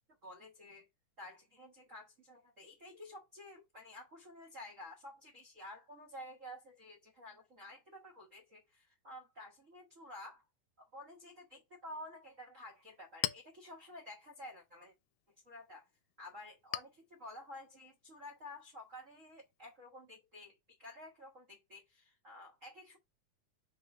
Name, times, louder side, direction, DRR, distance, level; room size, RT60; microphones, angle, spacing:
voice 1, 0.2-0.9 1.2-10.4 10.8-14.9 15.4-15.9 16.2-23.0, left 1 dB, 75° right, 0.7 m, -51 dB
Chink clink, 12.6-19.8, left 16 dB, 80° left, 1.8 m, -47 dB
4.9 x 4.0 x 5.3 m
omnidirectional pair, 3.6 m